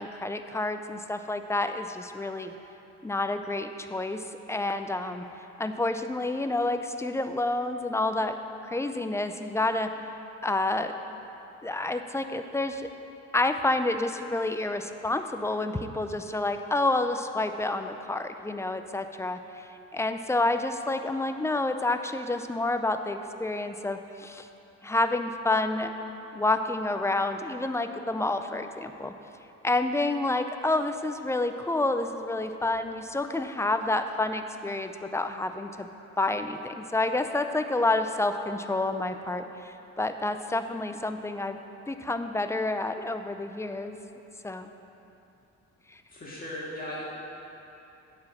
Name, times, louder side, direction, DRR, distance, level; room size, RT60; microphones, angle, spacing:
voice 1, 0.0-2.5 3.0-5.2 5.6-8.4 8.7-9.9 10.4-11.0 11.6-12.9 13.3-24.5 24.8-25.9 26.3-29.1 29.6-35.9 36.2-41.6 41.9-44.0 44.4-44.7 45.9-46.0, left 2 dB, 10° left, 8 dB, 0.4 m, -29 dB
voice 2, 46.1-47.1, left 1 dB, 30° left, -6 dB, 1.8 m, -37 dB
9.2 x 4.9 x 7.1 m, 2.9 s
cardioid pair, 90°, 30 cm